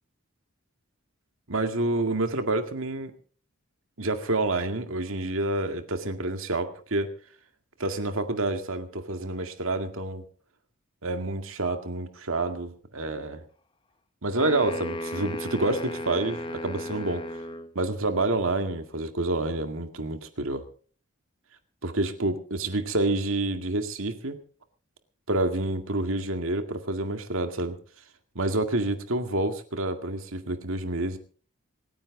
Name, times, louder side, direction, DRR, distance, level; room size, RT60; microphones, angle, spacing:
voice 1, 1.5-3.1 4.0-7.1 7.8-10.2 11.0-13.4 14.2-17.3 17.8-20.7 21.8-24.4 25.3-27.8 28.4-31.2, right 2 dB, 70° right, 7 dB, 2.1 m, -28 dB
sound 1, 14.4-17.7, left 1 dB, 20° left, 1.0 m, -35 dB
26.5 x 10.0 x 3.9 m, 0.41 s
head